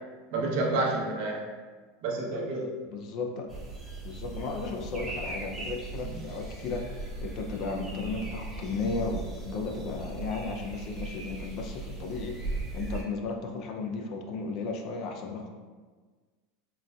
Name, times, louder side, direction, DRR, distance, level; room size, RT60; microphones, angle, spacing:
voice 1, 0.3-1.4 2.0-2.7 6.0-6.2, right 2 dB, 65° right, -2 dB, 0.7 m, -29 dB
voice 2, 2.9-3.6 4.0-15.5, left 4 dB, 50° left, 3 dB, 0.4 m, -35 dB
sound 1, 3.5-13.0, right 3 dB, 15° right, 0.8 m, -38 dB
3.9 x 2.2 x 2.3 m, 1.4 s
supercardioid pair, 135°, 0 cm